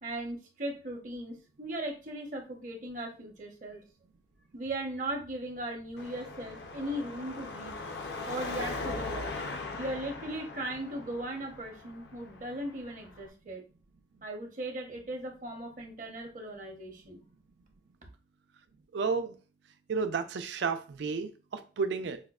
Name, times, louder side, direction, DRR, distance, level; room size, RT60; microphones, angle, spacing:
voice 1, 0.0-3.8 4.5-7.8 8.3-9.3 9.7-13.6 14.2-17.2, right 1 dB, 45° right, 0.7 m, -38 dB
Car passing by / Traffic noise roadway noise / Engine, 6.0-13.3, left 3 dB, 70° left, 0.5 m, -40 dB
voice 2, 18.9-19.3 19.9-22.2, right 5 dB, 80° right, 0.4 m, -32 dB
4.8 x 2.1 x 2.3 m
head